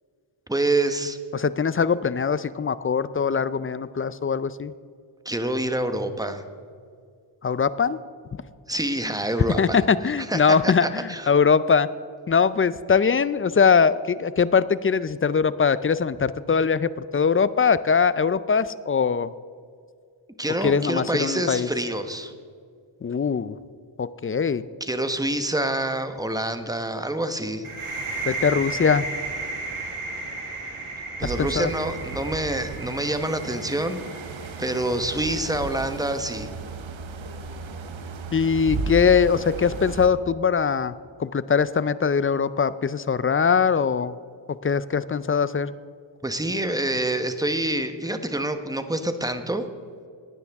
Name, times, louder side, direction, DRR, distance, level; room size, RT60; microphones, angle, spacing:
voice 1, 0.5-1.2 5.2-6.4 8.7-9.8 10.2-11.3 20.4-22.3 24.8-27.7 31.2-34.0 34.6-36.5 46.2-49.7, right 1 dB, 5° right, 8 dB, 1.1 m, -27 dB
voice 2, 1.3-4.7 7.4-8.0 9.6-11.9 12.3-19.3 20.6-21.7 23.0-23.6 24.0-24.7 28.3-29.1 31.2-31.7 38.3-40.9 41.2-44.1 44.6-45.7, left 6 dB, 25° left, 16 dB, 0.4 m, -22 dB
sound 1, 27.6-35.2, right 3 dB, 80° right, 2.0 m, -34 dB
sound 2, 31.2-40.1, right 4 dB, 65° right, 1.0 m, -35 dB
17.0 x 9.5 x 3.6 m, 2.2 s
cardioid pair, 45°, 50 cm